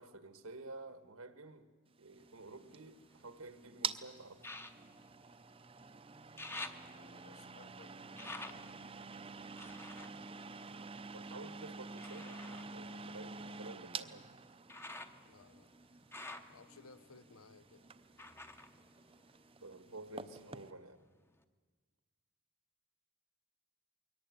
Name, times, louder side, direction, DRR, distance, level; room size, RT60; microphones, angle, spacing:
voice 1, 0.0-1.7 2.0-4.5 11.1-14.3 19.6-21.0, right 2 dB, 85° right, 1.6 m, -51 dB
sound 1, 2.0-20.7, right 5 dB, 25° right, 0.6 m, -48 dB
sound 2, 2.2-3.6 4.4-5.9 6.1-11.3 12.0-19.8 20.1-20.9 21.4-21.5, left 2 dB, 10° left, 0.8 m, -51 dB
voice 2, 6.9-8.8 9.1-9.5 15.3-15.7 16.5-17.9, left 4 dB, 85° left, 0.8 m, -61 dB
22.5 x 18.0 x 9.5 m
head